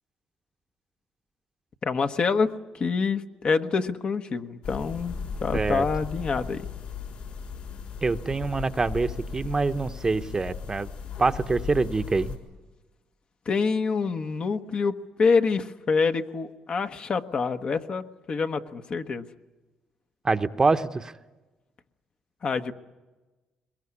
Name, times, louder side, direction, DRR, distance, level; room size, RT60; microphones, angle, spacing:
voice 1, 1.8-5.1 5.4-6.6 13.5-19.3 22.4-22.7, left 5 dB, 50° left, 7 dB, 1.2 m, -26 dB
sound 1, 4.6-12.4, left 5 dB, 75° left, 5.2 m, -36 dB
voice 2, 5.5-5.9 8.0-10.9 11.2-12.4 20.2-21.1, right 3 dB, 25° right, 10 dB, 0.9 m, -25 dB
22.0 x 21.0 x 9.7 m, 1.2 s
cardioid pair, 80°, 2 cm